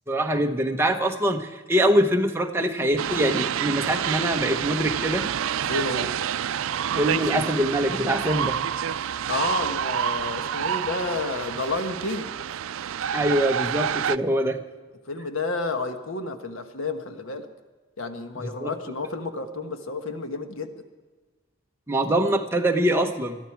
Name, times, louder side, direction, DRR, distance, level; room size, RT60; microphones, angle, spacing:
voice 1, 0.1-5.3 7.0-8.6 13.1-14.6 18.6-18.7 21.9-23.4, right 1 dB, 10° right, 3 dB, 1.0 m, -23 dB
sound 1, 3.0-14.2, right 9 dB, 85° right, 0.4 m, -28 dB
voice 2, 5.7-6.1 9.3-12.3 15.1-17.5 18.0-20.7, left 3 dB, 80° left, 7 dB, 1.3 m, -30 dB
21.5 x 13.5 x 4.7 m, 1.3 s
head